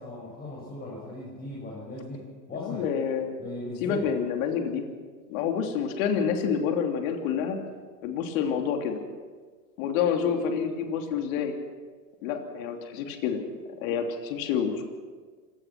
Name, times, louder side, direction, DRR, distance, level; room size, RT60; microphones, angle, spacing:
voice 1, 0.0-2.9 3.4-4.1, left 1 dB, 20° left, -4 dB, 6.3 m, -38 dB
voice 2, 2.6-3.3 3.8-4.8 5.3-7.6 8.0-9.0 9.8-11.5 12.2-13.4 13.8-14.8, left 7 dB, 55° left, 4 dB, 3.2 m, -28 dB
26.5 x 17.5 x 6.1 m, 1.5 s
hypercardioid pair, 125°, 50 cm